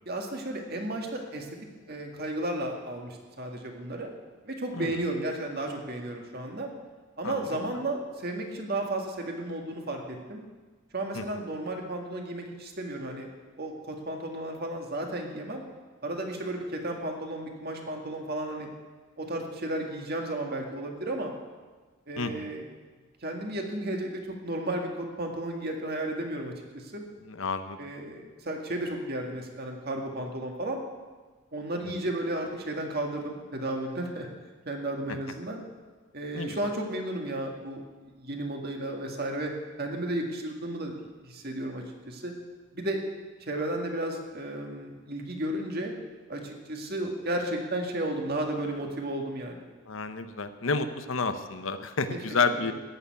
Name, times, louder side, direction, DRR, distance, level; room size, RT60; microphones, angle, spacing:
voice 1, 0.1-1.5 1.9-4.1 4.4-6.7 7.2-10.4 10.9-13.3 13.6-15.6 16.0-18.7 19.2-21.3 22.1-22.6 23.2-27.0 27.8-30.8 31.5-34.3 34.7-35.6 36.1-37.8 38.1-39.5 39.8-42.3 42.7-43.0 43.4-45.9 46.3-49.7 52.1-52.2 52.5-52.7, right 1 dB, 45° right, 2 dB, 1.9 m, -33 dB
voice 2, 7.2-7.6 11.1-11.2 22.2-22.5 27.2-27.8 35.1-35.2 36.3-36.6 49.9-52.7, left 4 dB, 65° left, 9 dB, 0.9 m, -30 dB
14.0 x 7.0 x 9.5 m, 1.3 s
head